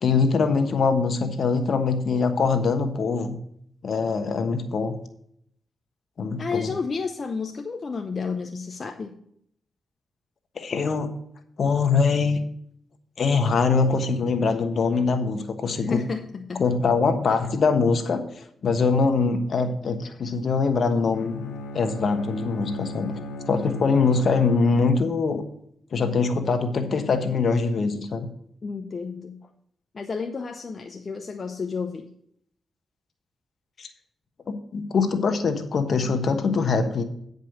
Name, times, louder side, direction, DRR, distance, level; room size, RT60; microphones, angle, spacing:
voice 1, 0.0-3.4 3.8-5.0 6.2-6.7 10.5-11.1 11.6-12.4 13.2-16.0 16.6-21.3 21.7-23.1 23.5-25.4 25.9-28.3 33.8-33.9 34.5-37.0, left 4 dB, 65° left, 7 dB, 1.2 m, -23 dB
voice 2, 6.4-9.1 15.8-16.6 28.6-29.4 29.9-32.1, left 5 dB, 50° left, 5 dB, 0.8 m, -31 dB
Bowed string instrument, 21.1-25.3, left 1 dB, 85° left, 1.0 m, -37 dB
9.2 x 5.3 x 6.6 m, 0.70 s
supercardioid pair, 50°, 0 cm